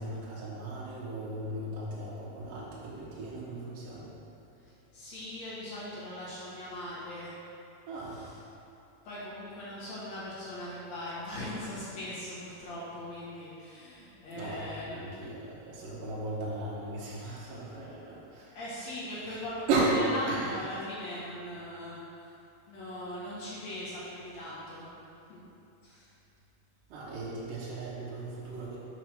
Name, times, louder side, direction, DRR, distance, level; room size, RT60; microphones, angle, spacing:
voice 1, 0.0-4.4 4.9-5.0 7.9-8.3 14.3-18.6 19.2-19.4 19.7-20.0 20.3-20.5 26.9-28.8, right 2 dB, 75° right, -7 dB, 2.6 m, -36 dB
voice 2, 4.9-7.3 9.1-15.1 18.6-19.7 20.1-22.0 22.7-24.9 25.3-25.4 25.8-26.1, left 1 dB, 55° left, -9 dB, 2.5 m, -40 dB
5.8 x 5.7 x 6.1 m, 2.7 s
omnidirectional pair, 4.2 m